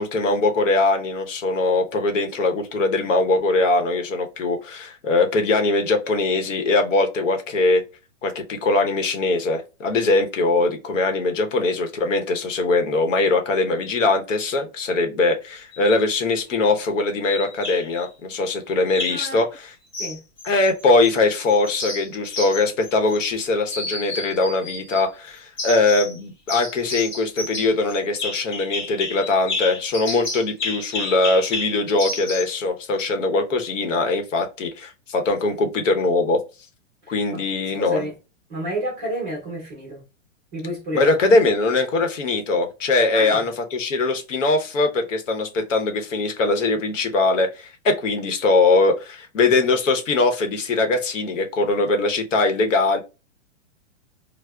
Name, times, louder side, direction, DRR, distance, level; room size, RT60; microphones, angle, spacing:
voice 1, 0.0-7.8 8.2-19.7 20.4-36.4 37.1-38.1 40.9-53.0, left 3 dB, 75° left, 0.9 m, -21 dB
sound 1, 15.7-16.1 17.2-18.0 18.9-19.3 19.9-21.2 21.5-23.4 23.7-25.0 25.6-26.2 26.5-32.6, left 3 dB, 40° left, 0.8 m, -31 dB
voice 2, 19.1-19.4 20.0-20.2 37.3-37.4 37.8-38.1 38.5-40.0 40.5-41.5 43.1-43.4, right 1 dB, 15° right, 0.6 m, -30 dB
4.7 x 2.0 x 2.2 m
hypercardioid pair, 175°, 38 cm